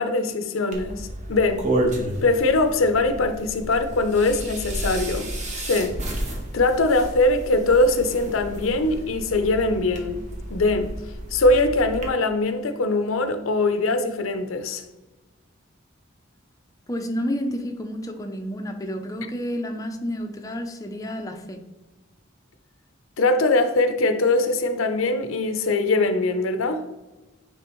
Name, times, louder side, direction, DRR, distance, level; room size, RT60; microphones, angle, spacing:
voice 1, 0.0-1.6 2.2-6.0 6.5-10.2 10.5-10.9 11.3-14.8 23.2-26.8, left 2 dB, 85° left, 0.6 m, -22 dB
sound 1, 0.7-12.1, right 1 dB, 35° right, 1.2 m, -31 dB
voice 2, 16.9-21.6, equal, 15° left, 0.5 m, -30 dB
9.1 x 3.4 x 3.0 m
head